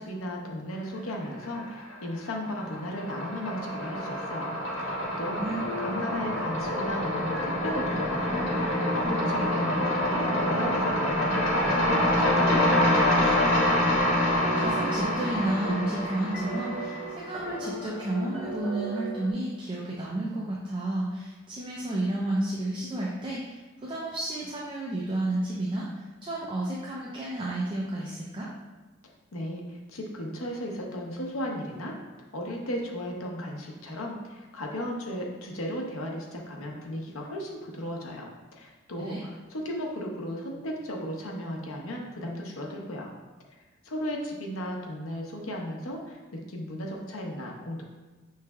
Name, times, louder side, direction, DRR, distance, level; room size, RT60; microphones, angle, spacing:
voice 1, 0.0-5.4 5.8-13.6 29.0-32.0 32.3-43.1 43.8-47.8, equal, 80° left, 0 dB, 0.7 m, -35 dB
sound 1, 1.2-1.9 2.2-17.4, left 1 dB, 65° left, 1.3 m, -26 dB
sound 2, 5.4-19.3, right 1 dB, ahead, 0.7 m, -38 dB
voice 2, 14.6-28.5 39.0-39.2, right 1 dB, 25° right, -5 dB, 0.4 m, -31 dB
6.0 x 3.2 x 2.3 m, 1.2 s
head